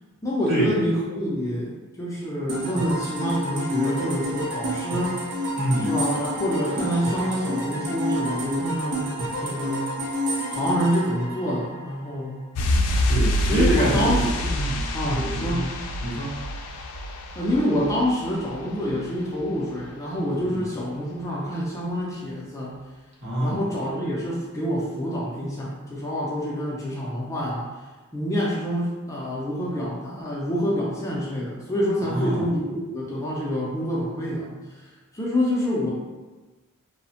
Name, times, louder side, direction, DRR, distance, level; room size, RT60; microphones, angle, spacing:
voice 1, 0.2-5.2 5.8-9.0 9.4-9.9 10.5-12.4 13.5-14.6 14.9-15.7 17.4-22.7 23.4-27.7 28.1-34.8 35.1-35.9, equal, 15° left, -6 dB, 0.3 m, -27 dB
sound 1, 2.5-12.2, equal, 80° right, 0.6 m, -29 dB
voice 2, 5.6-5.9 13.1-14.2 14.5-15.7 16.0-16.3 20.4-20.6 23.2-23.6 32.0-32.5, equal, 50° right, -7 dB, 0.9 m, -26 dB
sound 2, 12.6-19.1 19.3-19.4, equal, 90° left, 0.3 m, -26 dB
2.7 x 2.0 x 2.7 m, 1.2 s
head